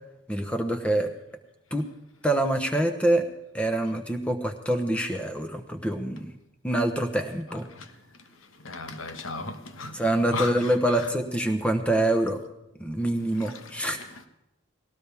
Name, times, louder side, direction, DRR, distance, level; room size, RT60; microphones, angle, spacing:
voice 1, 0.3-1.1 1.7-1.9 2.2-3.3 3.5-6.3 6.6-7.7 9.9-12.4 12.8-14.0, right 1 dB, 5° left, 1.0 m, -25 dB
voice 2, 7.5-7.8 8.6-11.1 13.3-14.3, left 3 dB, 90° left, 1.4 m, -37 dB
19.0 x 17.5 x 3.5 m
head